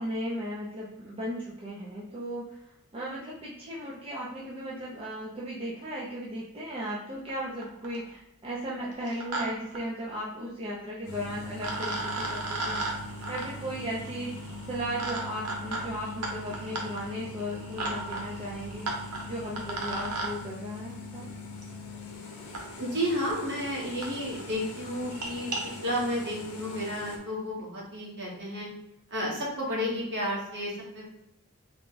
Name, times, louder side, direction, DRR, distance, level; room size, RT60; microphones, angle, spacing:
voice 1, 0.0-12.8 13.3-18.9 19.3-21.3, equal, 25° right, -6 dB, 0.6 m, -36 dB
sound 1, 7.3-7.4 7.6-8.1 8.9-9.4 9.7-9.8 11.1-11.2 11.6-20.3 21.6-21.7 22.5-22.6 23.3-23.4 23.6-23.7 24.0-24.1 24.4-24.6 25.0-25.6, right 2 dB, 90° right, 0.8 m, -36 dB
sound 2, 11.0-27.2, left 2 dB, 70° left, 0.7 m, -42 dB
voice 2, 22.8-25.5 25.8-28.7 29.1-31.1, equal, 55° right, -4 dB, 1.3 m, -32 dB
3.6 x 2.3 x 3.9 m, 0.82 s
head